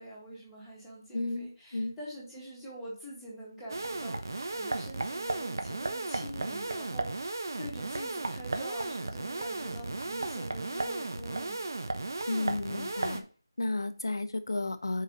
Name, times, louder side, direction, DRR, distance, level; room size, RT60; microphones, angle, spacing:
voice 1, 0.0-12.1, right 1 dB, ahead, -10 dB, 1.6 m, -45 dB
voice 2, 1.1-2.0 12.3-13.2 13.6-15.0, left 2 dB, 70° left, 9 dB, 0.7 m, -33 dB
sound 1, 3.7-13.2, right 2 dB, 55° right, 1.0 m, -35 dB
6.6 x 5.1 x 4.0 m, 0.40 s
figure-of-eight pair, 175°, 2 cm